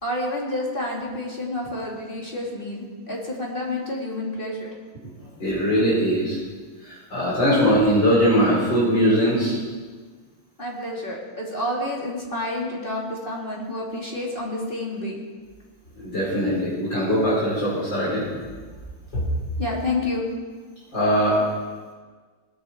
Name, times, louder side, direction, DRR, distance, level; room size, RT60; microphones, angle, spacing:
voice 1, 0.0-5.1 10.6-15.2 19.6-20.2, left 1 dB, 25° left, -3 dB, 2.7 m, -29 dB
voice 2, 5.4-6.4 6.8-9.6 16.0-18.3 19.1-19.2 20.9-21.4, equal, 55° left, -7 dB, 5.4 m, -21 dB
19.5 x 10.5 x 4.5 m, 1.5 s
omnidirectional pair, 2.4 m